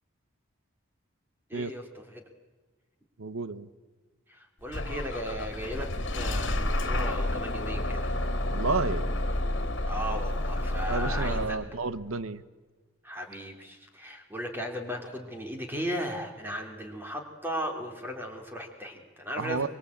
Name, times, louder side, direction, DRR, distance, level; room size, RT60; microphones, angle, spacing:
voice 1, 1.5-2.2 4.3-8.2 9.9-11.8 13.0-19.7, equal, 10° right, 3 dB, 2.9 m, -36 dB
voice 2, 3.2-3.7 8.5-9.2 10.9-12.4 19.4-19.7, right 4 dB, 90° right, 15 dB, 1.0 m, -31 dB
Bus / Engine starting, 4.7-11.5, left 1 dB, 60° left, 2.2 m, -30 dB
24.0 x 23.0 x 8.4 m, 1.3 s
head